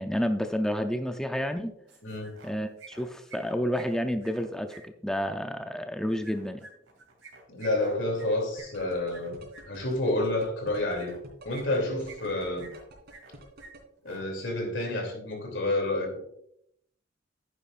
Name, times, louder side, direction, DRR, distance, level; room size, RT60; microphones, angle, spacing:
voice 1, 0.0-1.7 2.4-6.7, equal, 5° left, 6 dB, 0.5 m, -30 dB
sound 1, 1.9-2.5 2.8-4.8 6.2-9.6 10.9-11.2 11.5-12.3 12.6-13.3 13.6-13.7 14.0-14.2, right 4 dB, 85° right, 2.9 m, -49 dB
voice 2, 2.0-2.3 7.5-11.1 11.4-12.7 14.0-16.2, left 1 dB, 70° left, 3 dB, 2.9 m, -29 dB
sound 2, 8.6-13.8, right 1 dB, 55° right, 2.8 m, -47 dB
10.5 x 9.4 x 2.5 m, 0.73 s
head